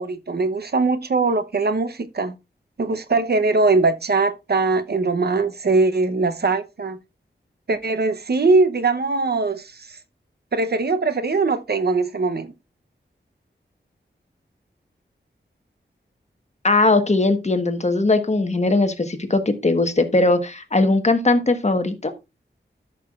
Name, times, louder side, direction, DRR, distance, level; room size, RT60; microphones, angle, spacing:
voice 1, 0.0-2.3 2.8-7.0 7.7-9.9 10.5-12.5, right 3 dB, 55° right, 0.8 m, -21 dB
voice 2, 16.6-22.1, left 2 dB, 35° left, 1.3 m, -19 dB
13.0 x 6.5 x 2.4 m
wide cardioid pair, 100°, 19 cm